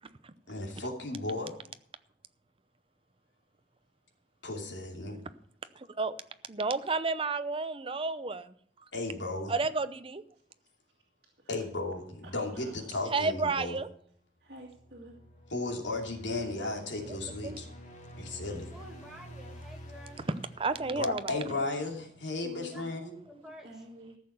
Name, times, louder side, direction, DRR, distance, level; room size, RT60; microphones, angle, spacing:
voice 1, 0.5-1.6 4.4-5.2 8.9-9.5 11.5-13.8 15.5-17.7 18.2-18.7 20.9-23.1, left 2 dB, 80° left, 2.8 m, -35 dB
voice 2, 6.5-8.5 9.5-10.2 13.1-13.9 17.1-17.2 17.4-17.6 20.6-21.4, right 4 dB, 30° right, 0.7 m, -31 dB
voice 3, 12.2-13.0 14.4-15.1 20.8-21.2 22.4-22.9 23.6-24.2, right 1 dB, 60° right, 2.3 m, -50 dB
sound 1, 14.5-21.8, equal, 40° left, 2.0 m, -49 dB
voice 4, 18.7-20.3 22.7-23.7, right 1 dB, 5° right, 2.1 m, -50 dB
14.5 x 6.7 x 7.0 m
head